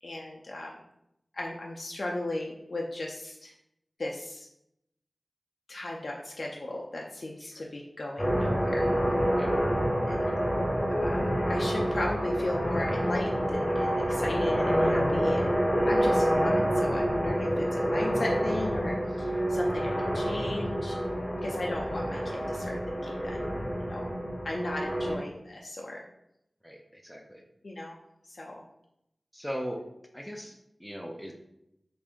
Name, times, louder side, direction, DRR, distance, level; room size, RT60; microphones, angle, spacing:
voice 1, 0.0-0.8 1.3-3.5 4.0-4.5 5.7-8.9 10.1-10.3 10.9-15.5 15.9-21.0 21.4-23.4 23.9-24.1 24.4-26.0 27.6-28.0 28.3-28.6, left 1 dB, 60° left, -2 dB, 0.4 m, -36 dB
sound 1, 8.2-25.2, equal, 20° left, 0.8 m, -27 dB
voice 2, 26.6-27.4 29.3-29.8 30.1-31.3, equal, ahead, 2 dB, 0.5 m, -39 dB
3.4 x 2.5 x 3.6 m, 0.80 s
wide cardioid pair, 75°, 0 cm